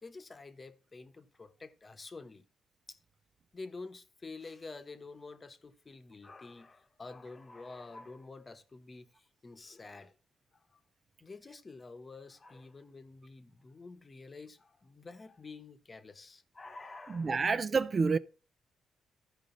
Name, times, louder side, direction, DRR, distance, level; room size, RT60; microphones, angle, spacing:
voice 1, 0.0-2.4 2.9-3.0 3.5-10.1 10.7-10.8 11.2-17.4, left 3 dB, 30° left, 1.0 m, -49 dB
voice 2, 17.1-18.2, right 4 dB, 35° right, 0.4 m, -28 dB
13.5 x 5.0 x 3.8 m
cardioid pair, 90°, 0 cm